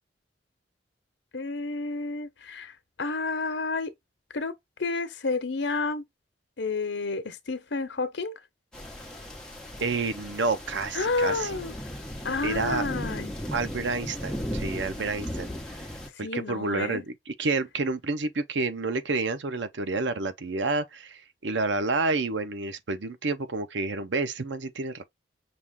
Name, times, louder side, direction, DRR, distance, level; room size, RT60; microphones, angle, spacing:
voice 1, 1.3-2.7 3.0-3.9 4.3-4.5 4.8-6.0 6.6-8.3 10.9-11.7 12.2-13.4 16.2-17.0, left 3 dB, 75° left, 0.9 m, -30 dB
sound 1, 8.7-16.1, equal, 5° left, 1.1 m, -36 dB
voice 2, 9.8-11.6 12.4-12.9 13.5-15.5 16.2-25.0, right 3 dB, 80° right, 0.7 m, -29 dB
6.0 x 2.4 x 3.5 m
head